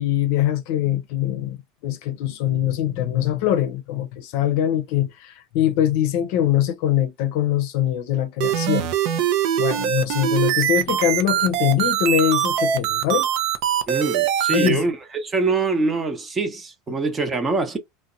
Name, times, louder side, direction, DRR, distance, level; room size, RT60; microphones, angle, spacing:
voice 1, 0.0-1.6 1.8-8.9 9.6-13.3 14.5-14.8, left 11 dB, 65° left, 0.5 m, -22 dB
sound 1, 8.4-14.7, right 10 dB, 60° right, 0.4 m, -22 dB
voice 2, 13.9-17.8, right 3 dB, 25° right, 0.7 m, -24 dB
2.6 x 2.1 x 2.5 m
hypercardioid pair, 95°, 0 cm